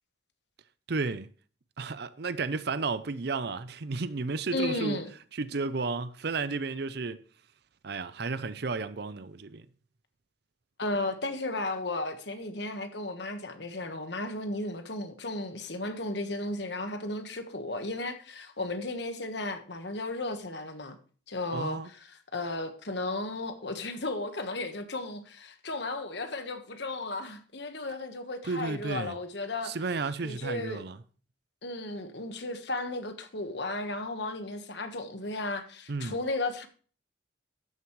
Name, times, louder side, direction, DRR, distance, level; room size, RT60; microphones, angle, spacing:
voice 1, 0.9-1.3 1.8-5.0 5.3-7.2 7.8-9.7 21.5-21.9 28.4-29.1 29.6-31.0 35.9-36.2, right 4 dB, 55° right, 0.6 m, -33 dB
voice 2, 4.5-5.1 10.8-21.0 21.3-29.7 30.2-30.8 31.6-36.7, left 2 dB, 60° left, 1.4 m, -34 dB
13.0 x 9.4 x 3.2 m
head